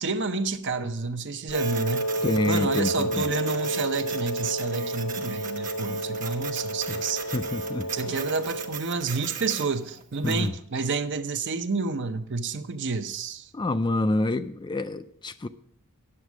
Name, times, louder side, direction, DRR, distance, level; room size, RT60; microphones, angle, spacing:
voice 1, 0.0-2.1 2.5-7.2 7.9-13.5, right 4 dB, 55° right, 0.7 m, -29 dB
Wind instrument woodwind instrument, 1.5-8.8, right 1 dB, 75° left, 1.0 m, -31 dB
Printer, 1.5-10.5, right 7 dB, 35° right, 1.1 m, -39 dB
voice 2, 2.2-3.2 5.9-6.0 7.0-7.1 7.3-8.2 10.2-10.5 13.5-15.5, left 2 dB, 20° left, 0.3 m, -27 dB
9.7 x 7.3 x 6.0 m
head